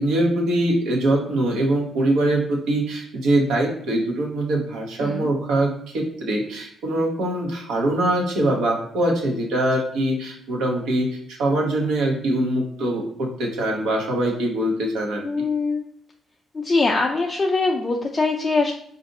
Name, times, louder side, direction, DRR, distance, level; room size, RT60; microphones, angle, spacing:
voice 1, 0.0-11.1 11.4-15.2, right 1 dB, 90° right, -1 dB, 0.8 m, -23 dB
voice 2, 5.0-5.3 15.2-15.8 16.5-18.7, left 3 dB, 30° left, 0 dB, 0.4 m, -22 dB
3.8 x 2.5 x 2.6 m, 0.67 s
cardioid pair, 90°, 0 cm